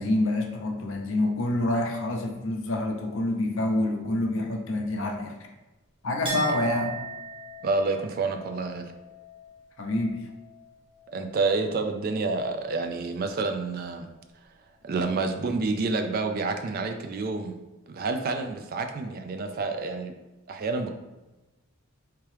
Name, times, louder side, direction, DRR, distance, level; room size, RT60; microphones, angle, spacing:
voice 1, 0.0-5.3 6.0-6.9 9.8-10.2, left 1 dB, 65° left, 2 dB, 0.6 m, -27 dB
Chink clink, 6.2-11.8 12.1-12.9, right 3 dB, 25° right, 1.0 m, -40 dB
voice 2, 7.6-8.9 11.1-14.1 14.8-17.6 17.9-20.1 20.5-20.9, right 3 dB, 40° right, 6 dB, 0.3 m, -28 dB
3.5 x 3.0 x 3.2 m, 1.1 s
head